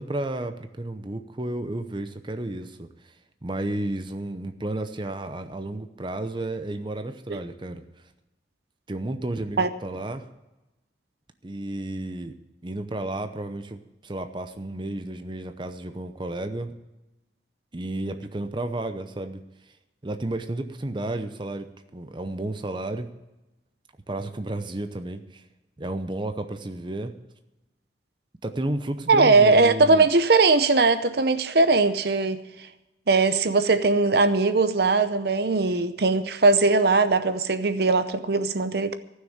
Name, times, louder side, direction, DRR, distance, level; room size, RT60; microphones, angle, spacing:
voice 1, 0.0-3.2 3.4-7.8 8.9-10.3 11.4-12.4 12.6-16.7 17.7-19.4 20.0-23.1 24.1-25.4 25.8-27.1 28.4-30.1, right 1 dB, 25° right, 0.7 m, -32 dB
voice 2, 29.1-32.4 33.1-38.9, right 3 dB, 60° right, 0.7 m, -20 dB
15.0 x 6.5 x 8.7 m
head